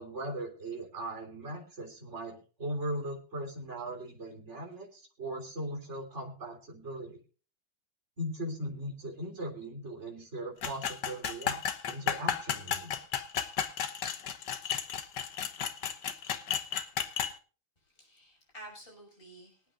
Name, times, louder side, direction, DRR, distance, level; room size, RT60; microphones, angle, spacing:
voice 1, 0.0-7.2 8.2-11.6 11.9-13.0, right 1 dB, 35° right, 0 dB, 3.9 m, -39 dB
sound 1, 10.6-17.3, left 8 dB, 65° left, 1.6 m, -33 dB
voice 2, 17.8-19.7, right 1 dB, 25° left, 0 dB, 6.2 m, -51 dB
24.5 x 9.0 x 2.5 m, 0.37 s
omnidirectional pair, 2.1 m